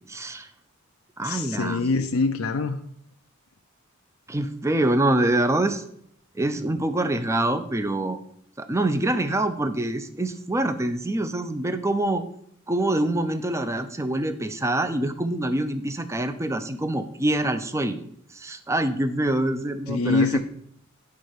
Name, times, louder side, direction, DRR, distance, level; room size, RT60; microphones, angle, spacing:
voice 1, 0.1-0.5 1.2-1.9 4.3-5.8 6.4-8.2 8.6-12.2 12.7-18.0 18.3-20.4, right 1 dB, 15° right, 10 dB, 0.5 m, -25 dB
voice 2, 1.2-2.8 19.9-20.4, left 3 dB, 80° left, 5 dB, 0.6 m, -24 dB
9.5 x 4.1 x 6.5 m, 0.67 s
head